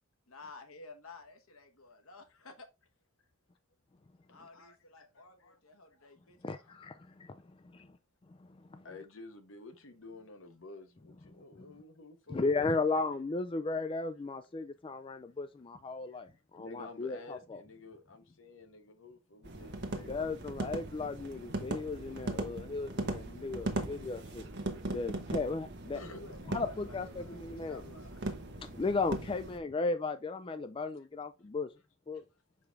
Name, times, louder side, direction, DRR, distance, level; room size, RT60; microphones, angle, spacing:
voice 1, 0.3-2.5 4.3-6.7 26.1-28.2 32.1-32.2, left 3 dB, 85° left, 1.3 m, -53 dB
voice 2, 4.5-5.6 5.9-6.1 8.8-13.2 16.1-16.2 16.6-20.8 25.9-26.2, left 3 dB, 65° left, 1.1 m, -51 dB
voice 3, 6.4-7.4 7.7-7.9 8.7-8.9 12.3-16.3 16.5-17.6 20.0-24.5 24.8-26.0 26.5-27.8 28.8-31.7 32.1-32.2, left 3 dB, 25° left, 0.4 m, -35 dB
sound 1, 19.4-29.6, right 2 dB, 55° right, 1.1 m, -39 dB
5.9 x 4.9 x 3.4 m
head